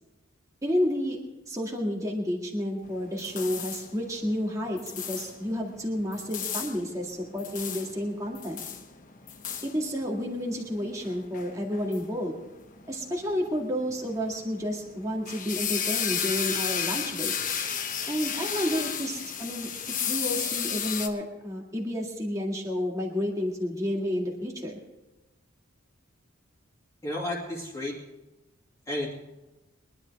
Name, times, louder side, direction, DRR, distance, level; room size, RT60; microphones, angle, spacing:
voice 1, 0.6-1.2 1.5-8.6 9.6-12.4 12.9-17.3 18.1-19.7 20.1-24.8, equal, 15° right, -1 dB, 2.0 m, -30 dB
sound 1, 2.8-21.1, left 8 dB, 40° left, 1.2 m, -34 dB
voice 2, 27.0-28.0 28.9-29.1, left 1 dB, 15° left, -5 dB, 2.3 m, -32 dB
22.5 x 11.0 x 3.5 m, 1.0 s
head